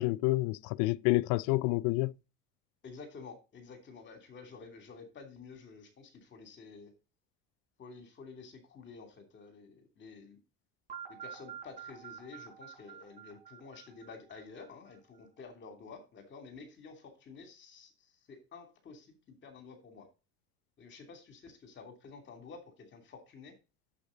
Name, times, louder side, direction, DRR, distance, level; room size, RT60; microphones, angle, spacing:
voice 1, 0.0-2.1, left 20 dB, 75° left, 0.5 m, -28 dB
voice 2, 2.8-6.9 7.8-10.4 11.1-20.1 20.8-23.5, left 4 dB, 40° left, 2.8 m, -51 dB
sound 1, 10.9-14.9, right 8 dB, 25° right, 5.2 m, -48 dB
8.5 x 7.1 x 3.9 m
cardioid pair, 130°, 29 cm